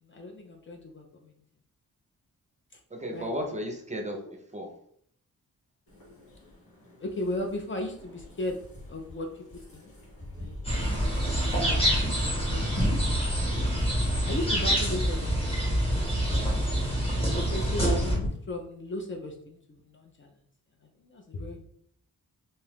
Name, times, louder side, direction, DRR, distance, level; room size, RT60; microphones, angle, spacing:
voice 1, 0.0-1.3 3.0-3.3 4.2-4.3 7.0-8.6 8.9-9.9 10.4-11.3 11.7-12.2 12.5-13.2 14.2-15.7 17.3-20.3 21.0-21.6, left 2 dB, 35° left, 1 dB, 0.5 m, -36 dB
voice 2, 2.9-4.2 4.5-4.8, equal, 20° right, 1 dB, 0.5 m, -34 dB
sound 1, 5.9-18.3, left 1 dB, 75° left, 1.1 m, -41 dB
sound 2, 10.6-18.2, equal, 15° left, 1.0 m, -26 dB
2.7 x 2.3 x 3.4 m, 0.65 s
wide cardioid pair, 115°, 36 cm